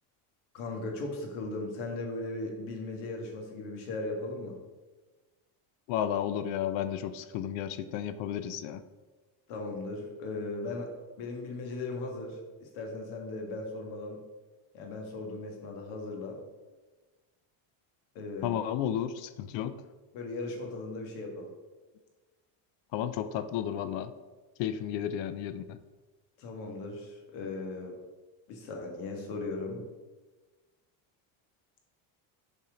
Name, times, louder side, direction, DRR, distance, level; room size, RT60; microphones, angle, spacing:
voice 1, 0.5-4.6 9.5-10.9 11.2-14.2 14.7-16.4 18.2-18.6 20.1-21.5 26.4-28.0 28.5-29.8, left 2 dB, 90° left, 1 dB, 1.8 m, -37 dB
voice 2, 5.9-8.8 18.4-19.8 22.9-24.1 24.6-25.8, left 10 dB, 70° left, 12 dB, 0.6 m, -32 dB
7.1 x 4.3 x 5.0 m, 1.3 s
cardioid pair, 150°, 46 cm